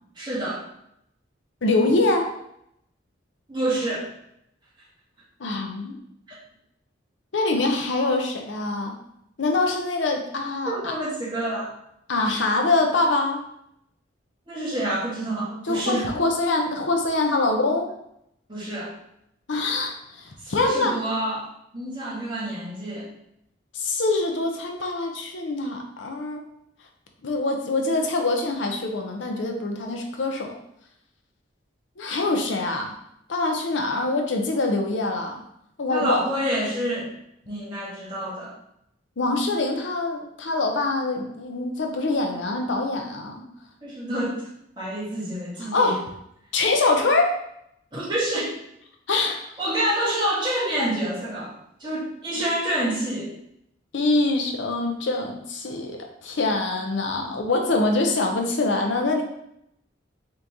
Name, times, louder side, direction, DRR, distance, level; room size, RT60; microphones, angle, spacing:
voice 1, 0.1-0.6 3.5-4.1 6.3-6.4 10.6-11.7 14.5-16.1 18.5-18.9 20.4-23.1 35.9-37.1 37.5-38.5 43.8-44.5 44.8-46.0 47.9-48.6 49.6-53.3, right 1 dB, 25° right, -8 dB, 1.4 m, -28 dB
voice 2, 1.6-2.3 5.4-6.0 7.3-9.0 9.4-10.9 12.1-13.4 15.7-17.9 19.5-21.0 23.7-26.4 27.2-30.6 32.0-32.9 33.3-35.4 35.8-36.2 39.2-43.4 45.6-46.0 46.5-47.4 49.1-49.4 53.9-59.2, left 2 dB, 75° left, 3 dB, 0.7 m, -24 dB
3.9 x 3.1 x 3.5 m, 0.77 s
head